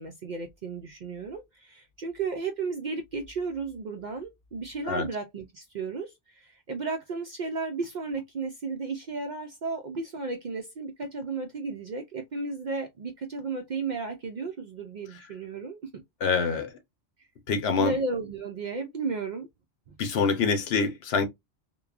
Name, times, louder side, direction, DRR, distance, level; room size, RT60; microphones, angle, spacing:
voice 1, 0.0-16.0 17.2-17.3 17.8-19.5 19.9-20.0, right 4 dB, 60° right, 0.5 m, -34 dB
voice 2, 16.2-16.7 17.5-18.0 20.0-21.3, left 5 dB, 70° left, 0.9 m, -25 dB
3.0 x 2.1 x 2.3 m
omnidirectional pair, 1.2 m